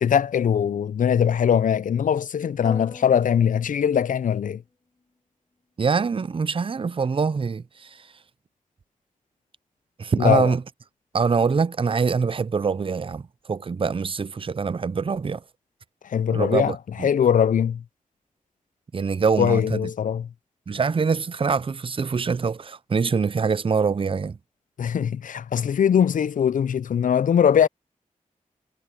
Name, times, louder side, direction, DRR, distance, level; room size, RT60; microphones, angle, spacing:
voice 1, 0.0-4.6 10.2-10.5 16.1-17.8 19.4-20.3 24.8-27.7, left 8 dB, 65° left, 0.5 m, -21 dB
sound 1, 2.6-4.6, left 2 dB, 30° left, 1.4 m, -41 dB
voice 2, 5.8-8.1 10.0-10.6 11.1-13.2 13.5-15.4 16.3-17.1 18.9-19.9 20.7-24.4, right 5 dB, 40° right, 0.5 m, -24 dB
cardioid pair, 50°, 14 cm